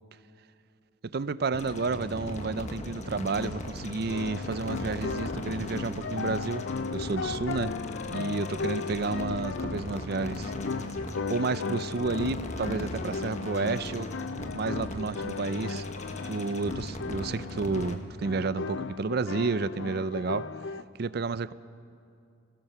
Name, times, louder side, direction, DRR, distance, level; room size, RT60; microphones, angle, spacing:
voice 1, 1.0-6.7 6.9-7.7 8.1-10.5 11.3-14.1 14.5-15.9 16.2-20.5 21.0-21.5, right 4 dB, 55° right, 16 dB, 0.5 m, -31 dB
sound 1, 1.5-18.0, left 1 dB, 40° left, 1.3 m, -38 dB
sound 2, 4.1-20.8, left 5 dB, 70° left, 0.5 m, -36 dB
23.0 x 17.0 x 6.8 m, 2.4 s
head